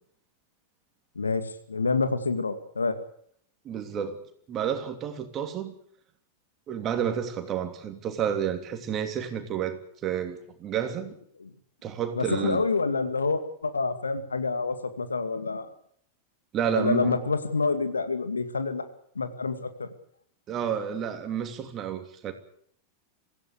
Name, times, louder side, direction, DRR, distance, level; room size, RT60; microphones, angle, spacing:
voice 1, 1.2-3.0 11.4-11.5 12.2-15.7 16.7-18.9 19.2-19.9, left 4 dB, 75° left, 2.2 m, -27 dB
voice 2, 3.6-5.7 6.7-11.2 11.8-12.6 16.5-17.3 20.5-22.3, right 8 dB, 30° right, 3.1 m, -30 dB
24.0 x 16.0 x 8.4 m
figure-of-eight pair, 90°, 0 cm